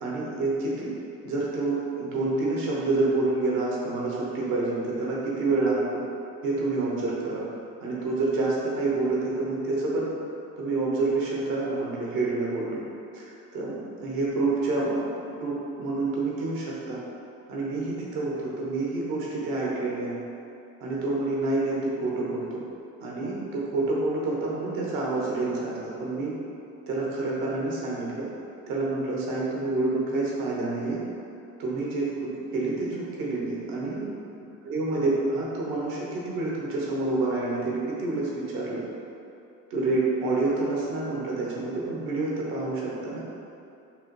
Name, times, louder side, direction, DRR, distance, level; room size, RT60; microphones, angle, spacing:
voice 1, 0.0-0.9 1.2-6.0 6.4-7.4 7.8-10.1 10.6-12.8 13.1-13.2 13.5-17.0 17.5-20.1 20.8-22.6 23.0-26.3 26.9-28.3 28.7-31.0 31.6-32.9 33.2-34.1 34.6-38.8 39.7-43.2, right 2 dB, 85° right, -4 dB, 1.0 m, -28 dB
5.4 x 2.1 x 3.1 m, 2.7 s
supercardioid pair, 75°, 34 cm